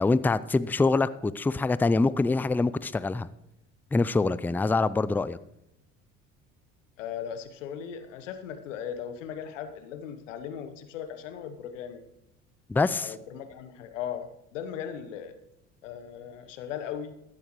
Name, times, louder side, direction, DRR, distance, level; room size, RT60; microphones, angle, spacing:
voice 1, 0.0-3.3 3.9-5.4 12.7-13.1, left 3 dB, 5° left, 18 dB, 0.4 m, -25 dB
voice 2, 7.0-12.1 12.9-15.3 15.8-17.1, left 8 dB, 80° left, 10 dB, 1.2 m, -38 dB
15.0 x 12.0 x 3.1 m, 0.84 s
hypercardioid pair, 60°, 38 cm